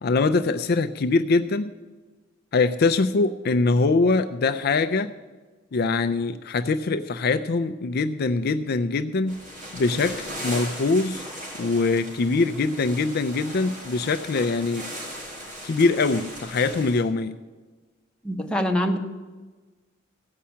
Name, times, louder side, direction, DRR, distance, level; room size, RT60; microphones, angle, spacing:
voice 1, 0.0-1.7 2.5-5.1 5.7-9.4 9.7-11.2 11.5-14.8 15.6-17.3, left 3 dB, 50° left, 8 dB, 0.4 m, -23 dB
sound 1, 9.3-17.0, equal, 40° right, 3.7 m, -38 dB
voice 2, 18.2-19.0, equal, 5° left, 2 dB, 0.9 m, -24 dB
15.5 x 5.7 x 8.5 m, 1.3 s
head